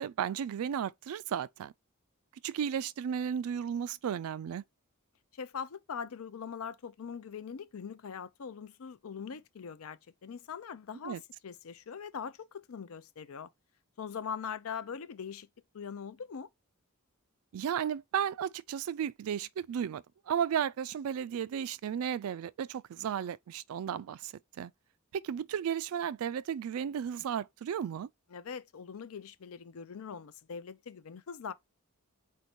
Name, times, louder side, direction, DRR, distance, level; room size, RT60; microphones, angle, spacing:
voice 1, 0.0-1.7 2.4-4.6 11.0-11.2 17.5-24.7 25.1-28.1, right 8 dB, 80° right, 0.3 m, -34 dB
voice 2, 5.3-13.5 14.0-15.5 15.7-16.5 28.3-31.5, left 6 dB, 75° left, 0.5 m, -42 dB
4.4 x 2.6 x 4.3 m
head